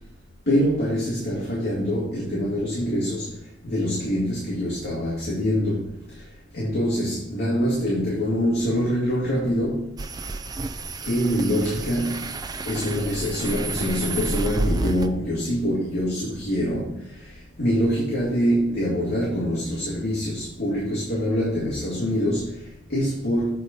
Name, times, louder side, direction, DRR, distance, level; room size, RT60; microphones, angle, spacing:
voice 1, 0.5-6.3 6.5-9.9 11.0-12.3 12.6-23.5, equal, 60° left, -7 dB, 2.3 m, -25 dB
sound 1, 10.0-15.1, right 2 dB, 20° right, 0.4 m, -30 dB
8.3 x 4.2 x 5.2 m, 0.79 s
head